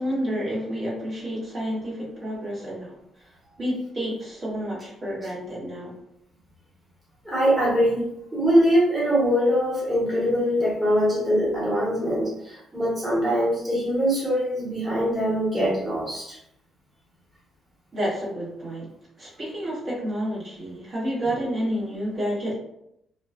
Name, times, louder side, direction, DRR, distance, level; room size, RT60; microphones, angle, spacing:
voice 1, 0.0-2.9 3.6-6.0 17.9-18.9 19.2-22.5, equal, 50° right, -7 dB, 1.2 m, -29 dB
voice 2, 7.2-8.1 8.3-16.4, equal, 15° right, -8 dB, 1.1 m, -22 dB
2.3 x 2.2 x 2.4 m, 0.77 s
cardioid pair, 90°, 0 cm